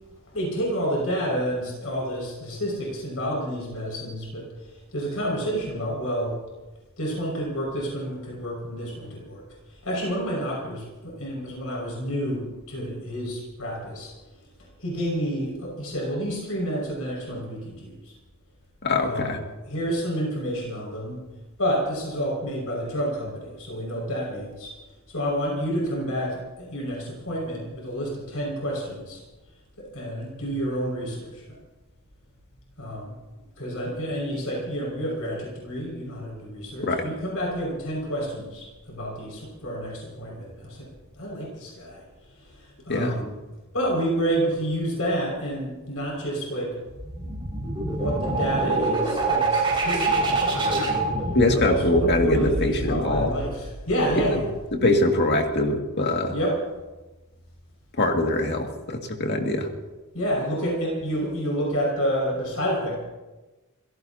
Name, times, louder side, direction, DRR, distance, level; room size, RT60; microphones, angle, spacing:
voice 1, 0.3-6.3 7.0-9.4 9.7-14.1 14.8-18.1 19.0-21.2 21.6-24.7 25.1-29.2 29.8-31.4 32.8-33.1 33.6-40.9 41.2-42.0 42.4-43.3 43.7-46.7 47.8-51.0 51.5-54.4 56.3-56.6 60.1-63.0, equal, 70° left, -2 dB, 5.7 m, -29 dB
voice 2, 18.8-19.4 36.8-37.0 42.9-43.2 51.3-53.3 54.3-54.4 54.7-56.3 58.0-59.7, left 2 dB, 50° left, 2 dB, 2.2 m, -23 dB
sound 1, 46.9-54.5, right 2 dB, 25° right, 5.4 m, -26 dB
28.0 x 17.5 x 2.8 m, 1.1 s
head